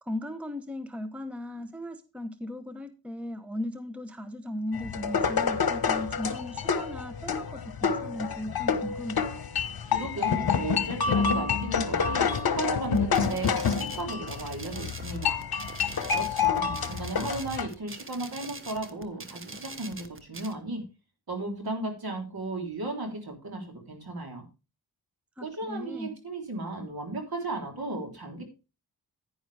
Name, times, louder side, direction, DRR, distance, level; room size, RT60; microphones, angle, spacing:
voice 1, 0.0-9.2 25.4-26.2, left 1 dB, 5° right, 10 dB, 0.9 m, -37 dB
sound 1, 4.7-17.7, left 6 dB, 60° left, 1.2 m, -28 dB
voice 2, 9.9-15.4 16.1-20.8 21.3-24.4 25.4-28.4, right 2 dB, 60° right, 3 dB, 3.6 m, -35 dB
sound 2, 12.8-20.5, right 3 dB, 30° right, 1.3 m, -44 dB
10.5 x 10.0 x 3.4 m, 0.30 s
cardioid pair, 70°, 42 cm